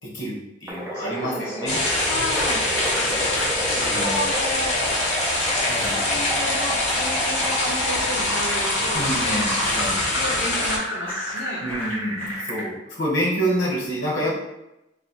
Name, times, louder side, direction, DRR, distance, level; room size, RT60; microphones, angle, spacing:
voice 1, 0.0-1.8 3.7-4.1 5.6-6.0 8.9-10.0 11.6-14.4, equal, 80° left, -3 dB, 1.4 m, -27 dB
sound 1, 0.7-12.7, equal, 15° right, 0.6 m, -31 dB
voice 2, 0.9-3.2 3.7-5.2 5.9-9.5 10.0-11.6, left 1 dB, 65° left, -7 dB, 0.7 m, -32 dB
sound 2, 1.7-10.8, left 1 dB, 35° left, 0.9 m, -24 dB
sound 3, 1.8-12.6, equal, 10° left, 1.2 m, -35 dB
3.2 x 2.6 x 4.1 m, 0.92 s
head